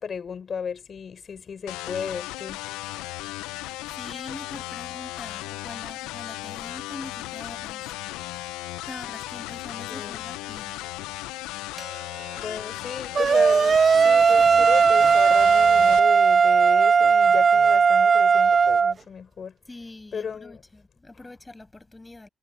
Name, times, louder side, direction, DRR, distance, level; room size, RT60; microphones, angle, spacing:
voice 1, 0.0-2.6 9.9-10.3 12.3-19.5 20.1-20.6, left 6 dB, 55° left, 7.5 m, -34 dB
sound 1, 1.7-16.0, left 18 dB, 85° left, 0.9 m, -36 dB
voice 2, 3.6-8.3 8.9-10.9 11.3-11.4 19.7-22.3, left 2 dB, 20° left, 6.8 m, -43 dB
sound 2, 11.8-17.6, right 2 dB, 20° right, 5.8 m, -51 dB
sound 3, 13.2-18.9, right 5 dB, 45° right, 0.5 m, -17 dB
hypercardioid pair, 50°, 0 cm